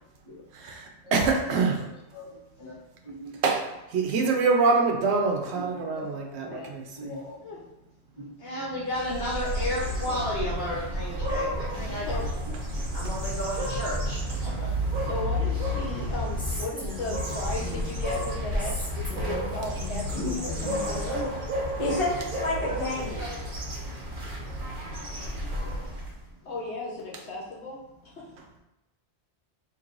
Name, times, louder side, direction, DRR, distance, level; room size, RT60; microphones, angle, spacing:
voice 1, 0.5-1.8 3.4-7.1, right 4 dB, 80° right, 1 dB, 1.0 m, -25 dB
voice 2, 1.4-1.9 2.1-2.7 3.0-3.3 5.5-6.1 6.4-6.7 7.0-7.4 10.1-10.2 11.8-12.1 20.1-21.2 21.8-23.3, left 2 dB, 30° left, -3 dB, 0.8 m, -34 dB
voice 3, 8.4-12.1 12.9-14.7 23.2-23.4, equal, 65° left, -6 dB, 1.2 m, -32 dB
sound 1, 8.9-26.2, equal, 50° right, 1.0 m, -31 dB
voice 4, 15.0-20.7 26.4-27.8 28.0-28.3, left 2 dB, 85° left, -3 dB, 1.3 m, -36 dB
Female speech woman speaking, 16.4-18.1 18.6-21.1, left 1 dB, 5° left, 0.9 m, -39 dB
4.6 x 3.0 x 2.5 m, 0.96 s
omnidirectional pair, 1.1 m